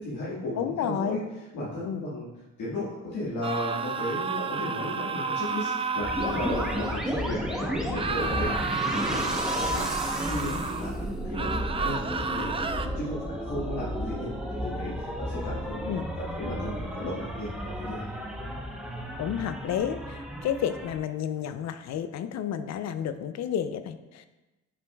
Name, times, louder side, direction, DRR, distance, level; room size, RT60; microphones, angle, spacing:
voice 1, 0.0-1.2 1.5-2.3 2.6-8.5 8.8-10.9 11.2-12.6 12.9-14.3 14.6-15.9 16.2-18.0, left 1 dB, 85° left, -9 dB, 1.7 m, -35 dB
voice 2, 0.6-1.2 1.8-2.0 15.9-16.1 19.2-24.3, left 9 dB, 65° left, 11 dB, 0.5 m, -31 dB
sound 1, 3.4-7.1 7.9-10.9 11.3-12.9, right 4 dB, 20° right, 0.3 m, -31 dB
sound 2, 6.0-21.0, equal, ahead, 0.9 m, -33 dB
8.4 x 5.1 x 2.3 m, 1.1 s
cardioid pair, 90°, 30 cm